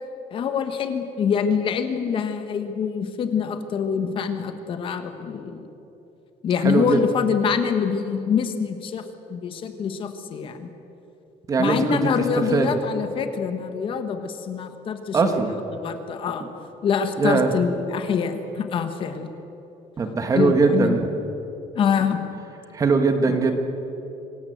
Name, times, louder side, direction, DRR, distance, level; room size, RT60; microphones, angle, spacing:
voice 1, 0.3-5.7 6.4-10.7 11.6-16.4 16.8-19.3 20.3-21.0 21.7-22.2 23.3-23.4, left 6 dB, 45° left, 8 dB, 1.4 m, -25 dB
voice 2, 6.6-7.0 11.5-12.0 12.5-12.7 15.1-15.5 17.2-17.5 20.0-21.1 22.7-23.5, right 4 dB, 25° right, 6 dB, 1.5 m, -20 dB
25.5 x 16.0 x 7.9 m, 3.0 s
cardioid pair, 175°, 13 cm